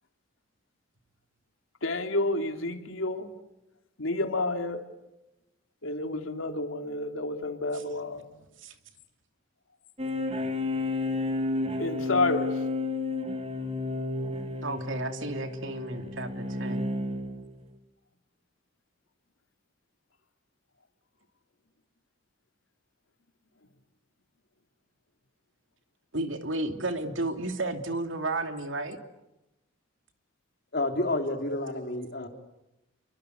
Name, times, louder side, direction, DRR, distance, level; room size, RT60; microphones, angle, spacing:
voice 1, 1.8-3.3 4.0-4.8 5.8-8.3 11.6-12.6, left 2 dB, 90° left, 6 dB, 3.0 m, -30 dB
sound 1, 10.0-17.6, left 2 dB, 30° right, 2.6 m, -32 dB
voice 2, 14.6-16.9 26.1-29.0, right 2 dB, 75° right, 6 dB, 2.9 m, -32 dB
voice 3, 30.7-32.3, left 2 dB, 55° left, 4 dB, 3.8 m, -29 dB
30.0 x 24.5 x 8.2 m, 0.93 s
head